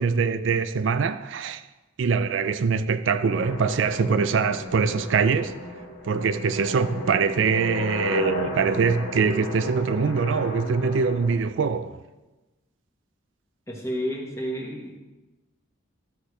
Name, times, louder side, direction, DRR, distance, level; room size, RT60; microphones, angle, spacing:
voice 1, 0.0-1.6 2.0-5.5 6.1-12.0, right 5 dB, 70° right, 0.4 m, -23 dB
sound 1, 3.3-11.3, left 2 dB, 90° left, 1.6 m, -34 dB
voice 2, 13.7-14.9, equal, 15° left, 1.3 m, -30 dB
13.0 x 6.5 x 3.3 m
head